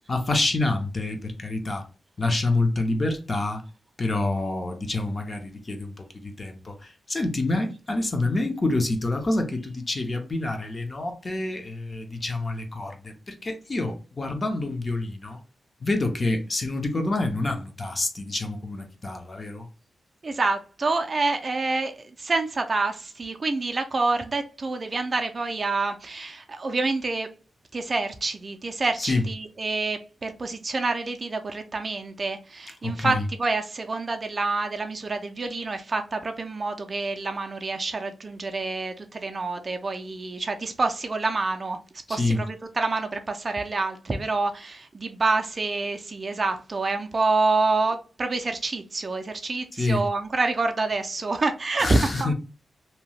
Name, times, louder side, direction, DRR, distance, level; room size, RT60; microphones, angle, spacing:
voice 1, 0.1-1.8 2.2-3.6 4.0-15.4 15.8-19.7 29.0-29.2 32.8-33.3 42.1-42.4 49.7-50.0 51.8-52.3, left 2 dB, 30° left, 0.5 m, -27 dB
voice 2, 20.2-27.3 27.7-41.8 42.1-52.3, right 3 dB, 30° right, 0.3 m, -27 dB
2.7 x 2.1 x 3.0 m
wide cardioid pair, 140°, 0 cm